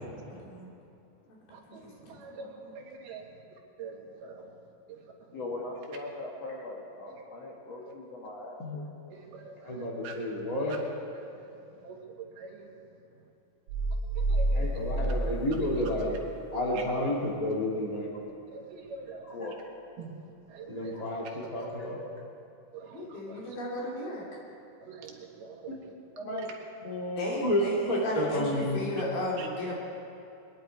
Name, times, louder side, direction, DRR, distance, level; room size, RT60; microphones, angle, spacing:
voice 1, 1.5-4.5 4.9-5.4 7.1-7.2 7.8-7.9 9.1-10.1 11.1-12.8 14.1-14.7 16.7-16.8 18.5-19.3 20.0-20.2 20.5-21.0 21.5-21.7 22.7-23.5 24.8-25.8 26.3-26.4 29.4-29.5, right 5 dB, 85° right, 0 dB, 3.5 m, -45 dB
voice 2, 2.0-2.7 22.9-24.3 27.2-29.8, left 1 dB, 75° left, -4 dB, 4.7 m, -35 dB
voice 3, 5.3-8.9 19.3-19.6 20.9-21.0 26.1-26.5 26.8-27.3 28.0-28.1, left 1 dB, 55° left, -2 dB, 2.1 m, -39 dB
voice 4, 9.6-10.8 14.5-16.1 16.5-18.1 20.7-22.0 27.4-28.9, left 1 dB, 15° left, -3 dB, 1.5 m, -30 dB
sound 1, 13.7-16.3 16.6-16.7, right 2 dB, 65° right, 2.9 m, -29 dB
22.5 x 10.5 x 4.6 m, 2.7 s
omnidirectional pair, 4.3 m